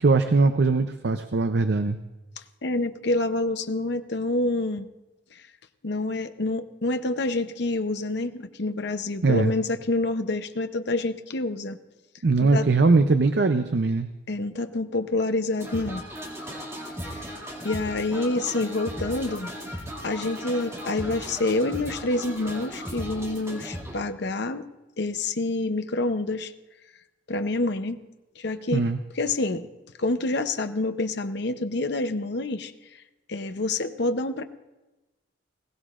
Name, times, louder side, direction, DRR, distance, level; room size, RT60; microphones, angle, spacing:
voice 1, 0.0-2.0 9.2-9.5 12.2-14.1 28.7-29.0, right 3 dB, 60° right, 9 dB, 0.6 m, -21 dB
voice 2, 2.6-4.9 5.3-5.4 5.8-11.8 12.4-12.7 14.3-16.0 17.0-17.3 17.6-19.5 20.0-24.7 25.0-26.5 27.3-28.0 28.4-28.9 29.1-29.7 30.0-32.7 33.3-34.4, left 2 dB, 60° left, 9 dB, 0.7 m, -27 dB
sound 1, 15.6-24.0, equal, 15° right, 2.4 m, -36 dB
20.5 x 17.5 x 2.5 m, 1.1 s
head